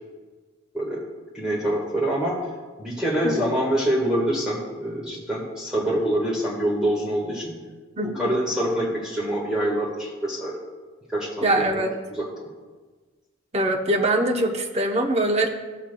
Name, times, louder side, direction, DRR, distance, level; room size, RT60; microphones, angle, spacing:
voice 1, 1.3-2.4 2.8-7.5 8.1-10.5 11.1-11.9 12.2-12.5, right 1 dB, 5° right, -6 dB, 1.4 m, -25 dB
voice 2, 8.0-8.3 11.4-11.9 13.5-15.5, right 1 dB, 30° right, 1 dB, 0.8 m, -23 dB
15.0 x 7.1 x 2.2 m, 1.3 s
head